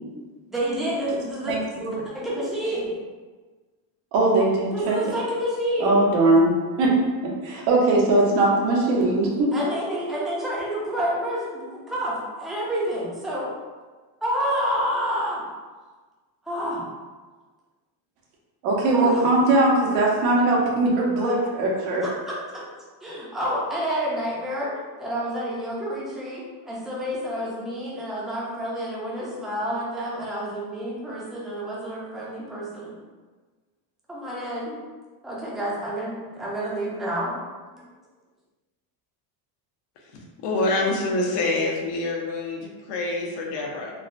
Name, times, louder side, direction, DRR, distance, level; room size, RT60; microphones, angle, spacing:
voice 1, 0.5-1.6 2.0-3.0 4.7-6.0 9.5-13.5 14.2-15.4 16.4-16.8 18.9-19.3 22.0-22.6 23.0-24.7 25.0-32.9 34.1-34.8 35.2-37.4 37.7-37.8, equal, ahead, -6 dB, 0.4 m, -29 dB
voice 2, 1.5-1.9 4.1-5.1 5.8-6.9 7.2-9.5 18.6-22.0, right 2 dB, 90° right, -3 dB, 1.0 m, -20 dB
voice 3, 40.1-43.9, left 2 dB, 60° left, -1 dB, 0.7 m, -26 dB
3.6 x 2.1 x 2.5 m, 1.3 s
cardioid pair, 135°, 49 cm